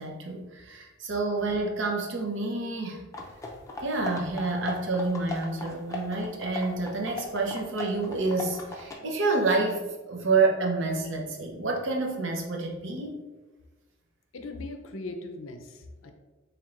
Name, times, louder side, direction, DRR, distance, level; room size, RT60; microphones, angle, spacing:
voice 1, 0.0-3.1 3.8-13.2, right 3 dB, 65° right, 1 dB, 0.7 m, -28 dB
sound 1, 3.1-8.9, left 2 dB, 15° left, 0.5 m, -38 dB
voice 2, 14.3-16.1, left 2 dB, 85° left, 5 dB, 0.5 m, -39 dB
4.4 x 3.2 x 2.4 m, 1.2 s
head